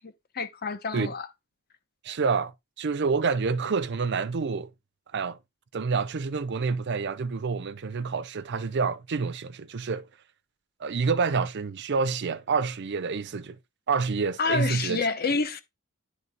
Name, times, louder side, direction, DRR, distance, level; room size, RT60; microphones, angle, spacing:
voice 1, 0.0-1.3 14.4-15.6, left 4 dB, 45° left, 0.8 m, -28 dB
voice 2, 2.0-4.7 5.1-5.4 5.7-10.1 10.8-13.6 13.9-15.1, right 5 dB, 55° right, 0.5 m, -28 dB
9.4 x 3.2 x 5.2 m
head